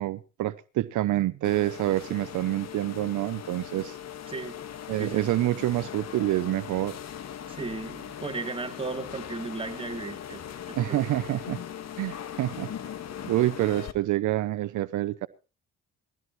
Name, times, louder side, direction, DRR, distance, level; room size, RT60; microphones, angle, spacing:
voice 1, 0.0-4.0 4.9-7.0 10.8-11.6 12.0-12.7 13.2-15.3, right 15 dB, 75° right, 0.7 m, -27 dB
sound 1, 1.4-13.9, left 9 dB, 60° left, 1.6 m, -40 dB
voice 2, 4.3-4.6 5.0-5.2 7.5-10.4 10.7-11.1, right 3 dB, 20° right, 3.3 m, -35 dB
21.0 x 16.0 x 3.1 m
cardioid pair, 90°, 30 cm